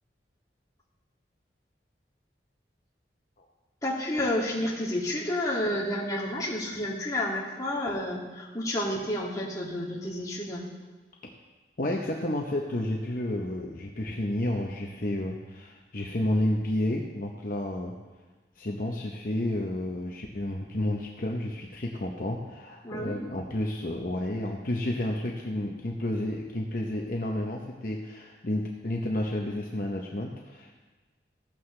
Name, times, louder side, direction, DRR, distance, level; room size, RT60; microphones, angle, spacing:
voice 1, 3.8-10.7 22.8-23.2, left 1 dB, 20° left, -5 dB, 2.3 m, -30 dB
voice 2, 11.8-17.9 18.6-30.7, left 1 dB, 50° left, 0 dB, 0.8 m, -31 dB
15.0 x 12.0 x 3.3 m, 1.3 s
head